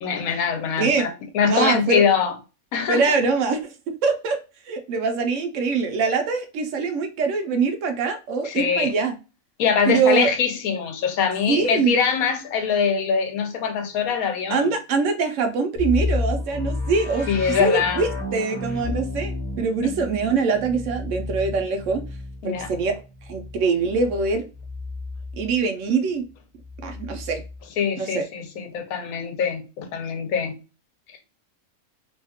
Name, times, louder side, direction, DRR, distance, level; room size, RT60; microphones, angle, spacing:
voice 1, 0.0-2.3 2.7-3.0 8.4-8.9 9.6-14.8 17.3-18.0 19.8-19.9 22.4-22.7 27.8-30.5, left 6 dB, 80° left, 1.1 m, -23 dB
voice 2, 0.8-1.1 1.4-2.0 2.9-4.4 4.7-9.2 9.9-10.3 11.5-11.9 14.5-17.3 17.6-22.0 22.4-22.9 23.3-24.5 25.4-26.3 26.8-27.4 28.0-28.2, right 4 dB, 70° right, 0.9 m, -23 dB
sound 1, 15.8-25.6 26.6-27.6, left 2 dB, 15° left, 0.7 m, -31 dB
2.8 x 2.3 x 2.8 m
omnidirectional pair, 1.5 m